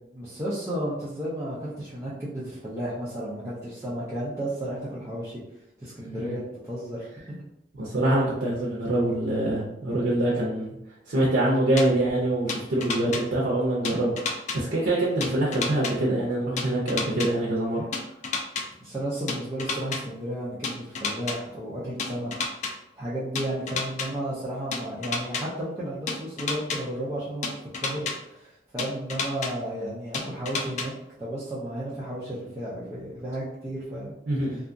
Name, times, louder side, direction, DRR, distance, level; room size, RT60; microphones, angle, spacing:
voice 1, 0.1-5.4 5.8-7.4 18.8-22.3 22.6-30.9 31.2-34.1, right 1 dB, 15° right, -10 dB, 0.5 m, -33 dB
voice 2, 6.1-6.4 7.8-10.8 11.1-17.8 34.3-34.6, right 1 dB, 90° right, -5 dB, 0.6 m, -25 dB
sound 1, 11.8-11.9 12.5-13.2 13.8-14.6 15.2-15.9 16.6-17.3 17.9-18.6 19.3-20.0 20.6-21.4 22.0-22.7 23.4-24.1 24.7-25.4 26.1-26.8 27.4-28.1 28.8-29.5 30.1-30.9, left 4 dB, 40° left, 0.3 m, -29 dB
2.8 x 2.3 x 2.5 m, 0.84 s
head